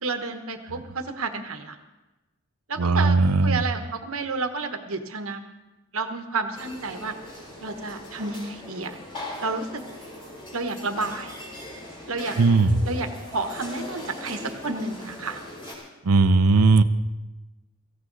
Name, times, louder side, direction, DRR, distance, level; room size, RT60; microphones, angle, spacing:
voice 1, 0.0-1.8 2.7-5.4 5.9-7.2 7.6-9.0 9.4-9.8 10.5-11.4 12.1-12.4 12.8-15.4, right 3 dB, 65° right, 7 dB, 1.2 m, -30 dB
voice 2, 2.8-3.6 12.4-12.8 16.0-16.8, right 3 dB, 90° right, 12 dB, 0.7 m, -18 dB
sound 1, 6.5-15.8, left 1 dB, 25° left, 4.2 m, -40 dB
17.0 x 15.0 x 4.0 m, 1.1 s
head